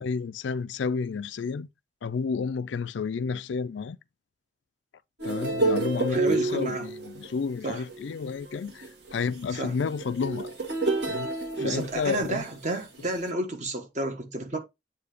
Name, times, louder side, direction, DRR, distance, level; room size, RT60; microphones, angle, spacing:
voice 1, 0.0-1.7 2.0-4.0 5.2-10.5 11.0-11.3 11.6-12.5, left 5 dB, 80° left, 0.4 m, -31 dB
sound 1, 5.2-12.5 13.1-13.3, right 3 dB, 65° right, 1.9 m, -30 dB
voice 2, 6.1-6.9 7.6-7.8 9.6-9.7 11.6-14.6, right 2 dB, 40° right, 1.3 m, -31 dB
8.2 x 2.8 x 4.9 m
head